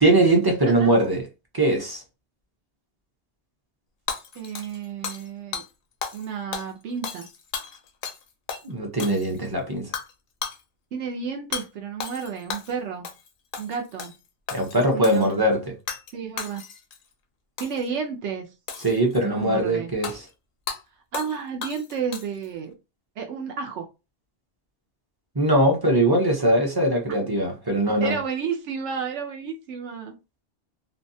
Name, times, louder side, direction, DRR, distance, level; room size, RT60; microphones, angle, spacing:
voice 1, 0.0-1.2 1.5-2.0 8.6-9.9 14.5-15.6 18.8-20.1 25.4-28.1, right 1 dB, 25° right, 0.5 m, -21 dB
Hammer / Shatter, 4.1-5.3 5.5-5.7 6.0-6.3 6.5-8.2 8.5-8.6 9.0-9.5 9.9-10.1 10.4-10.6 11.5-11.7 12.0-12.7 13.0-13.3 13.5-14.2 14.5-15.3 15.9-16.1 16.4-17.0 17.6-17.9 18.7-19.2 20.0-20.2 20.7-20.8 21.1-21.3 21.6-22.5, left 6 dB, 60° left, 0.6 m, -34 dB
voice 2, 4.3-5.6 6.1-7.3 10.9-13.1 13.6-14.1 14.9-15.4 16.1-16.6 17.6-18.5 19.2-19.9 21.1-22.7 23.2-23.9 28.0-30.2, right 6 dB, 85° right, 0.9 m, -31 dB
2.6 x 2.2 x 2.6 m
omnidirectional pair, 1.2 m